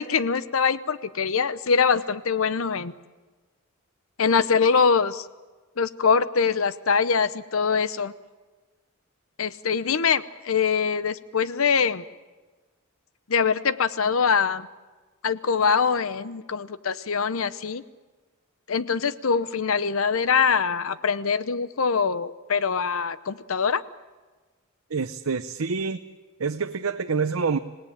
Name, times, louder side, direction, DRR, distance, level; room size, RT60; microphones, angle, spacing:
voice 1, 0.0-2.9 4.2-5.3 5.8-8.1 9.4-12.0 13.3-14.7 15.2-17.8 18.7-23.8, left 5 dB, 75° left, 15 dB, 0.8 m, -23 dB
voice 2, 24.9-26.0 26.4-27.6, right 5 dB, 85° right, 7 dB, 0.7 m, -26 dB
26.0 x 18.0 x 8.8 m, 1.3 s
head